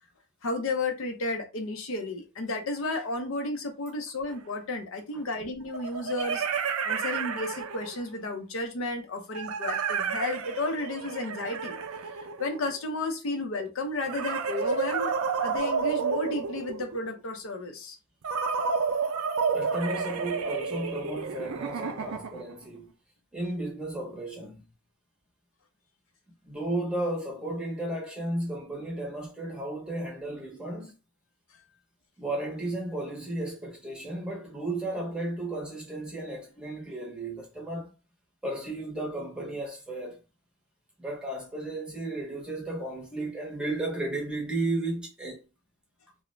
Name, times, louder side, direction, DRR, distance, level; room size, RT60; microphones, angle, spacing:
voice 1, 0.4-11.8 12.2-15.1 15.4-18.0, left 2 dB, 65° left, 0.5 m, -33 dB
sound 1, 4.3-4.4 5.7-8.1 9.3-12.8 14.0-17.1 18.2-22.5, right 5 dB, 75° right, 0.4 m, -31 dB
voice 2, 19.5-22.9 23.3-24.6 26.4-30.9 32.2-37.9 38.4-40.2 41.0-45.4, right 2 dB, 5° right, 0.7 m, -34 dB
2.4 x 2.0 x 3.0 m
head